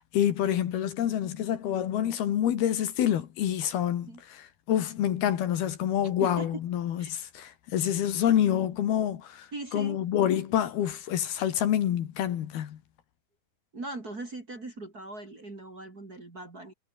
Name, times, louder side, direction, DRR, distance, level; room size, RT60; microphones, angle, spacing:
voice 1, 0.0-12.8, left 10 dB, 70° left, 3.7 m, -27 dB
voice 2, 6.2-6.6 7.0-7.1 9.5-10.0 13.7-16.7, right 2 dB, 25° right, 3.2 m, -39 dB
omnidirectional pair, 4.8 m